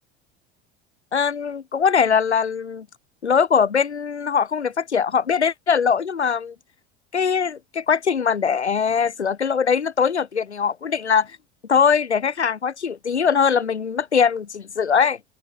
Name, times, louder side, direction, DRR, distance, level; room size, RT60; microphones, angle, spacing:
voice 1, 1.1-2.9 3.2-6.5 7.1-11.4 11.7-15.2, left 6 dB, 85° left, 1.2 m, -21 dB
open air
figure-of-eight pair, 70°, 33 cm